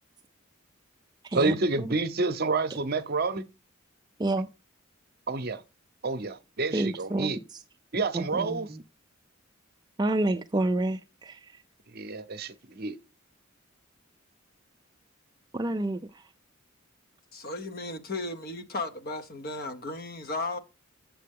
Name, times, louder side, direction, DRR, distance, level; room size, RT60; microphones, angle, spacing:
voice 1, 1.3-3.4 5.3-5.6 6.0-7.4 7.9-8.8 11.9-13.0, right 3 dB, 50° right, 0.8 m, -29 dB
voice 2, 6.7-7.3 8.1-8.6 10.0-11.4 15.5-16.0, right 2 dB, 20° right, 0.4 m, -28 dB
voice 3, 17.3-20.6, left 2 dB, 45° left, 0.9 m, -35 dB
7.7 x 7.6 x 3.6 m
head